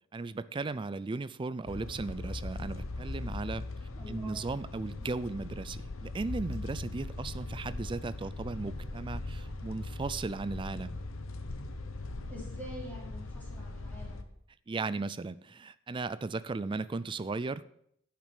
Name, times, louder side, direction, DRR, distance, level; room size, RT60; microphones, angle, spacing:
voice 1, 0.1-3.7 4.1-10.9 14.7-17.6, right 3 dB, 25° right, 16 dB, 0.3 m, -36 dB
sound 1, 1.7-14.2, left 2 dB, 65° left, 0.9 m, -40 dB
voice 2, 4.0-4.4 12.3-14.2, equal, 10° left, -6 dB, 3.6 m, -46 dB
10.5 x 6.1 x 5.5 m, 0.71 s
head